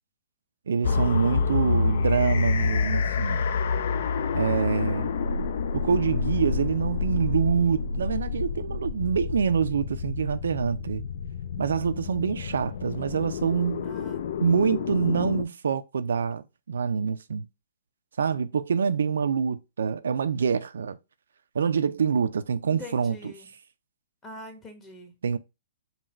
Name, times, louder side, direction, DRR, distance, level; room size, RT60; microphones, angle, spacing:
voice 1, 0.7-3.4 4.3-5.1 5.7-11.0 11.6-13.9 14.4-17.5 18.2-21.0 21.5-23.2 25.2-25.4, right 6 dB, 80° right, 0.3 m, -26 dB
sound 1, 0.8-15.4, left 5 dB, 65° left, 0.3 m, -28 dB
voice 2, 1.2-1.8 13.8-14.2 22.7-23.5 24.2-25.1, left 2 dB, 15° left, 1.0 m, -44 dB
3.9 x 2.2 x 4.1 m
hypercardioid pair, 140°, 0 cm